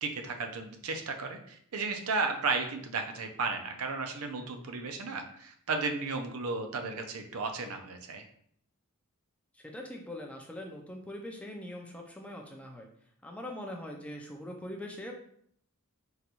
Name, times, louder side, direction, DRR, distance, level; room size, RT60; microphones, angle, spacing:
voice 1, 0.0-8.2, right 4 dB, 75° right, 5 dB, 0.5 m, -34 dB
voice 2, 9.5-12.9 13.2-15.1, left 1 dB, 5° left, 1 dB, 0.4 m, -42 dB
3.8 x 2.3 x 2.9 m, 0.64 s
head